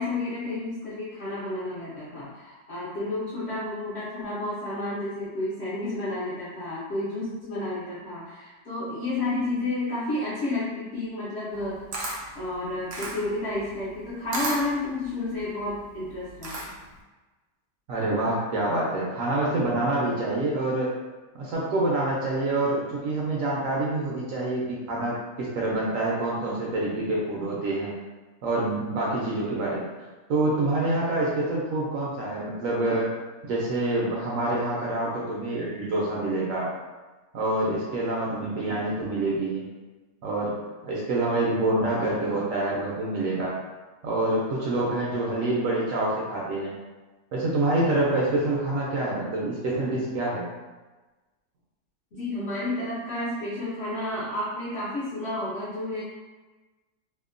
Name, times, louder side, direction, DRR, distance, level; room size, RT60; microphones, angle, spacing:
voice 1, 0.0-11.8 12.1-16.7 52.1-56.0, left 2 dB, 60° left, -9 dB, 0.7 m, -31 dB
Camera, 11.5-17.0, right 2 dB, 90° right, 1.2 m, -35 dB
voice 2, 17.9-20.9 21.3-27.9 28.4-29.9 30.3-33.1 33.4-36.7 37.3-39.6 40.2-40.5 40.8-43.5 44.0-46.7 47.3-50.5, right 2 dB, 70° right, -5 dB, 0.8 m, -26 dB
2.8 x 2.1 x 2.4 m, 1.2 s
omnidirectional pair, 1.7 m